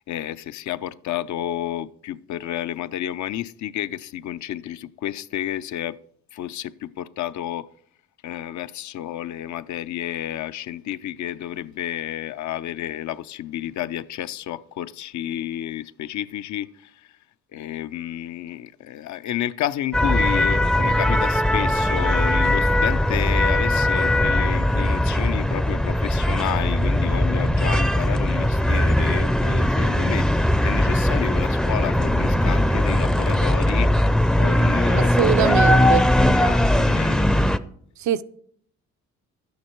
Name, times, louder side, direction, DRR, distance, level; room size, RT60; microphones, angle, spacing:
voice 1, 0.0-6.0 6.3-7.7 8.2-17.1 17.5-37.4, left 12 dB, 70° left, 0.6 m, -31 dB
sound 1, 19.9-37.6, left 1 dB, ahead, 0.5 m, -20 dB
voice 2, 34.9-36.1 38.0-38.2, right 10 dB, 70° right, 0.6 m, -23 dB
12.0 x 9.5 x 4.5 m
cardioid pair, 90°, 30 cm